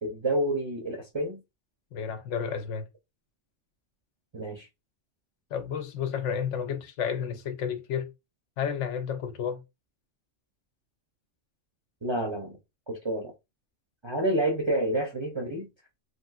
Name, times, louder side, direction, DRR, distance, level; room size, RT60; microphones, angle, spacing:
voice 1, 0.0-1.4 4.3-4.7 12.0-12.6 12.9-13.3 14.0-15.7, right 1 dB, 35° right, 0.5 m, -29 dB
voice 2, 1.9-2.9 5.5-8.1 8.6-9.6, left 7 dB, 80° left, 0.9 m, -31 dB
3.1 x 2.6 x 2.4 m
omnidirectional pair, 1.2 m